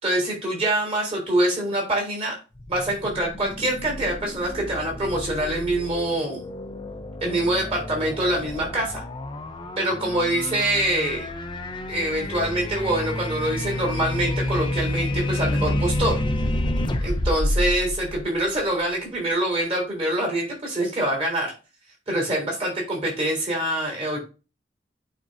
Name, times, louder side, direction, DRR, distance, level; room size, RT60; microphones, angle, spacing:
voice 1, 0.0-2.4 2.7-6.4 7.2-9.0 9.8-11.2 11.9-16.2 17.0-21.5 22.1-24.2, right 1 dB, 30° right, -1 dB, 3.3 m, -25 dB
sound 1, 2.6-18.8, left 1 dB, 25° left, 0.6 m, -29 dB
8.9 x 4.5 x 2.6 m, 0.32 s
head